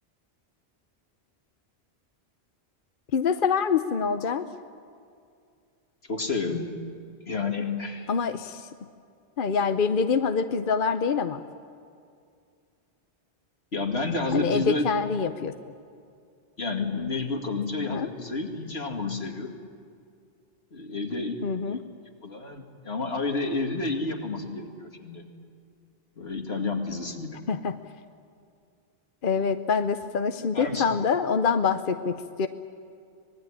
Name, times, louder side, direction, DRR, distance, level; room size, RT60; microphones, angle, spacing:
voice 1, 3.1-4.5 8.1-8.7 9.4-11.4 14.3-15.5 17.8-18.1 21.4-21.8 27.5-27.8 29.2-32.5, left 6 dB, 60° left, 9 dB, 1.0 m, -25 dB
voice 2, 6.0-6.7 7.3-8.1 13.7-14.9 16.6-19.5 20.7-21.4 21.7-21.8 22.2-25.3 26.2-27.4 30.5-30.9, left 3 dB, 90° left, 3 dB, 2.6 m, -30 dB
25.5 x 20.0 x 10.0 m, 2.4 s
omnidirectional pair, 1.0 m